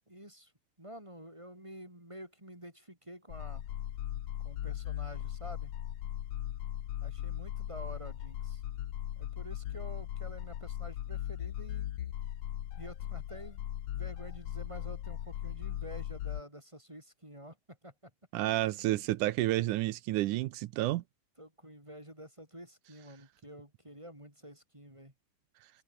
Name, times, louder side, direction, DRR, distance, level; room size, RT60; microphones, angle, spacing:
voice 1, 0.1-0.5 0.8-3.6 4.4-5.7 7.0-8.6 9.2-11.9 12.8-18.1 18.5-18.8 21.4-25.1, equal, 10° right, 5.0 m, -49 dB
sound 1, 3.3-16.4, left 12 dB, 60° left, 1.7 m, -38 dB
voice 2, 18.3-21.0, right 16 dB, 80° right, 2.2 m, -30 dB
omnidirectional pair, 3.8 m